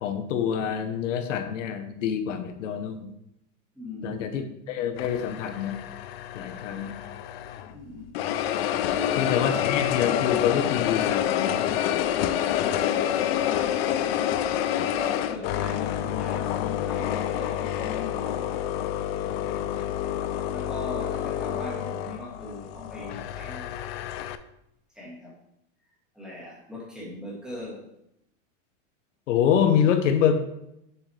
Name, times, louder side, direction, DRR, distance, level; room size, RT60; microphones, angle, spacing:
voice 1, 0.0-3.1 4.0-5.8 6.3-7.0 9.2-12.0 29.3-30.4, left 8 dB, 75° left, 7 dB, 1.0 m, -26 dB
voice 2, 3.7-4.5 7.6-8.2 8.9-9.6 12.6-13.8 14.8-18.5 20.5-24.0 24.9-25.4 26.1-27.9, left 2 dB, ahead, -6 dB, 1.6 m, -39 dB
sound 1, 5.0-7.7 8.1-24.4, left 11 dB, 55° left, 0.5 m, -28 dB
7.1 x 6.1 x 3.3 m, 0.80 s
supercardioid pair, 165°, 38 cm